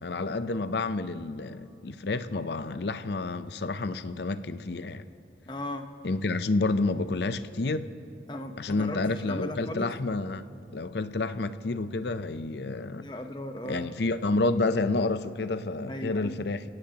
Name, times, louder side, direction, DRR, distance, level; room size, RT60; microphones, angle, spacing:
voice 1, 0.0-5.1 6.0-7.9 8.6-10.4 10.7-13.1 13.7-16.6, left 3 dB, 70° left, 12 dB, 0.6 m, -29 dB
voice 2, 5.5-5.9 8.3-9.9 13.0-13.9 15.9-16.4, left 1 dB, 25° left, 6 dB, 0.9 m, -37 dB
28.0 x 17.5 x 2.9 m, 2.4 s
head